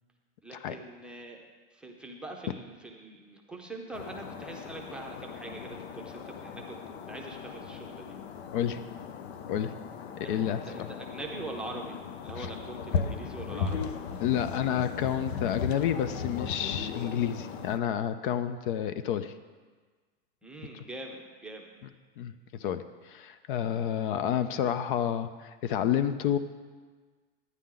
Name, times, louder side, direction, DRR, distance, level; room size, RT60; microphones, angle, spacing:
voice 1, 0.4-1.4 1.7-8.2 10.2-13.9 20.4-21.7, right 2 dB, 5° right, 0 dB, 0.6 m, -43 dB
sound 1, 3.9-17.8, left 6 dB, 80° left, 0.8 m, -37 dB
voice 2, 10.3-10.6 12.4-12.5 14.2-19.3 20.7-20.8 22.2-22.3 22.6-26.4, left 9 dB, 55° left, 12 dB, 0.5 m, -29 dB
11.5 x 9.5 x 3.8 m, 1.4 s
supercardioid pair, 155°, 31 cm